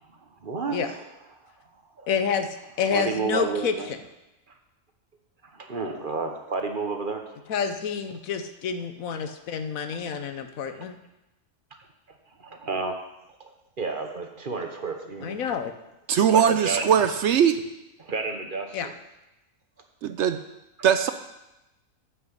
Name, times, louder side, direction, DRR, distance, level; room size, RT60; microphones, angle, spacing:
voice 1, 0.1-1.0 1.4-1.5 2.0-2.1 2.9-3.9 4.5-4.6 5.4-7.4 9.9-10.0 10.7-10.8 12.4-13.0 13.4-15.5 16.3-16.9 18.0-18.9, right 4 dB, 40° right, 5 dB, 1.2 m, -31 dB
voice 2, 2.1-4.0 7.5-11.0 15.2-15.7 18.7-18.9, left 6 dB, 85° left, 9 dB, 1.2 m, -28 dB
voice 3, 16.1-17.6 20.0-20.4 20.8-21.1, right 8 dB, 65° right, 9 dB, 0.8 m, -20 dB
9.4 x 5.9 x 7.9 m, 0.94 s
omnidirectional pair, 1.4 m